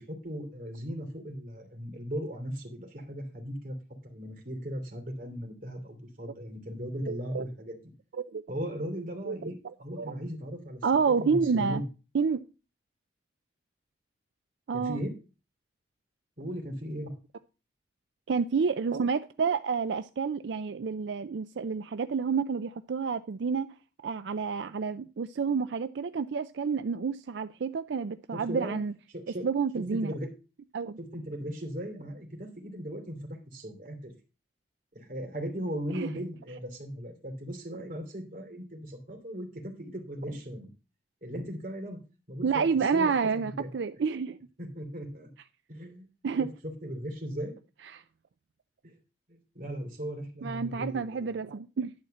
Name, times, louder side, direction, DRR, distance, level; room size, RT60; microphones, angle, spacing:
voice 1, 0.0-3.7 4.0-7.8 8.5-10.8 11.2-11.8 14.7-15.1 16.4-17.1 28.3-28.8 29.1-29.4 29.8-30.3 31.0-33.2 33.5-34.1 34.9-40.7 41.2-42.0 42.3-42.6 42.9-43.3 43.6-43.7 44.6-45.3 45.7-46.1 46.4-46.5 46.8-47.5 48.8-48.9 49.3-51.4, equal, 50° right, 2 dB, 3.0 m, -37 dB
voice 2, 7.0-7.4 8.1-8.4 9.3-9.5 10.0-10.1 10.8-11.8 12.1-12.4 14.7-15.0 18.3-23.7 24.0-28.9 29.4-30.1 30.7-31.0 35.9-36.1 42.4-44.4 46.2-46.5 47.9-48.0 50.4-51.9, right 5 dB, 85° right, 11 dB, 0.4 m, -29 dB
11.0 x 4.3 x 7.8 m, 0.33 s
head